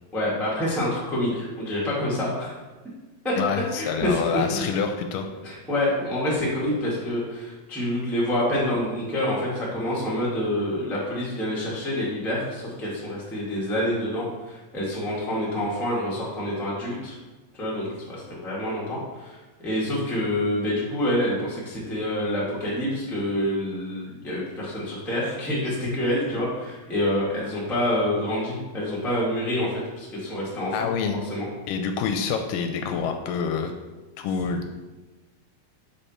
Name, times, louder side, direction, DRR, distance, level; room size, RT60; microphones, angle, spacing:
voice 1, 0.1-2.5 3.2-3.3 3.7-4.6 5.4-17.2 17.5-30.9 31.2-31.5, left 1 dB, ahead, -7 dB, 0.4 m, -27 dB
voice 2, 3.4-5.3 30.7-31.2 31.7-33.7 34.2-34.7, left 6 dB, 80° left, 5 dB, 2.1 m, -27 dB
5.6 x 5.0 x 4.3 m, 1.2 s
omnidirectional pair, 4.0 m